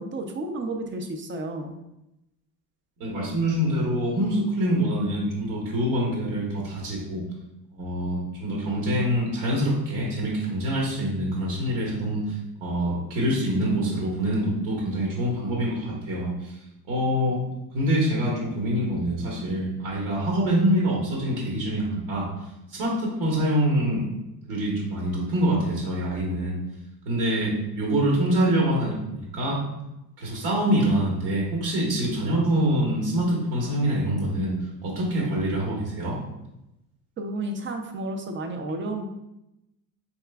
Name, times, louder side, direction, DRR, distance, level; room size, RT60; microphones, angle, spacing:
voice 1, 0.0-1.7 37.2-39.0, right 2 dB, 25° right, 4 dB, 0.6 m, -32 dB
voice 2, 3.0-7.2 7.7-16.6 16.9-17.4 17.7-22.3 22.7-24.0 24.4-26.6 27.1-29.6 30.2-36.2, right 1 dB, 65° right, -3 dB, 1.3 m, -25 dB
4.8 x 3.1 x 2.3 m, 0.90 s
supercardioid pair, 95°, 45 cm